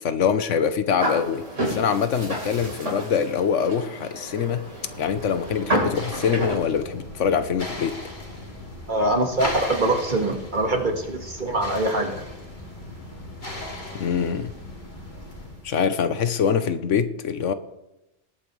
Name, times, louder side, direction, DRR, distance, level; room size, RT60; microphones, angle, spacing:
voice 1, 0.0-4.7 5.0-8.0 13.9-14.5 15.6-17.5, left 7 dB, 75° left, 11 dB, 1.2 m, -24 dB
sound 1, 1.0-6.6, right 1 dB, 75° right, 4.3 m, -30 dB
sound 2, 4.3-15.8, left 1 dB, 40° left, 2.4 m, -37 dB
voice 2, 8.9-12.2, right 2 dB, 40° right, 4 dB, 1.8 m, -24 dB
20.0 x 8.8 x 3.2 m, 0.91 s
omnidirectional pair, 1.3 m